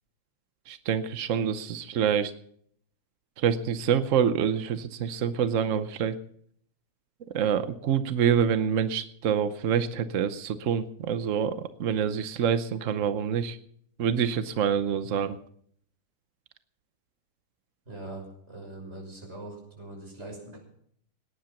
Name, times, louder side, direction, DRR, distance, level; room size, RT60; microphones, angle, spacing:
voice 1, 0.7-2.3 3.4-6.2 7.3-13.6 14.0-15.4, right 8 dB, 75° right, 11 dB, 0.7 m, -26 dB
voice 2, 17.9-20.6, right 2 dB, 30° right, 0 dB, 6.6 m, -42 dB
18.5 x 10.5 x 6.0 m, 0.65 s
omnidirectional pair, 2.4 m